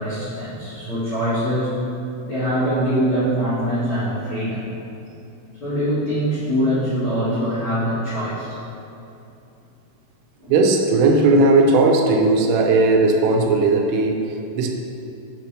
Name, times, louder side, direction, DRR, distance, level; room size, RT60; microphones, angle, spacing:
voice 1, 0.0-1.7 2.3-4.6 5.6-8.6 10.4-10.5, equal, 80° left, -13 dB, 1.1 m, -23 dB
voice 2, 10.5-14.7, right 3 dB, 90° right, 2 dB, 3.3 m, -17 dB
9.3 x 3.5 x 5.9 m, 2.8 s
omnidirectional pair, 5.6 m